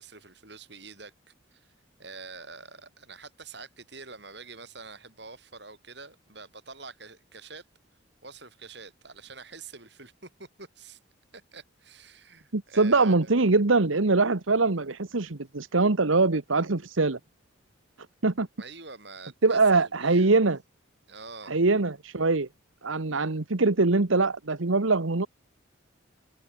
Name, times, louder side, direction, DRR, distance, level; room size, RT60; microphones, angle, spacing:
voice 1, 0.0-1.7 2.0-7.7 8.2-11.0 11.3-13.3 18.6-20.3 21.1-21.6, right 4 dB, 55° right, 8.0 m, -46 dB
voice 2, 12.5-17.2 18.2-18.5 19.4-20.6 21.5-22.5 22.8-25.3, right 3 dB, 85° right, 1.3 m, -23 dB
head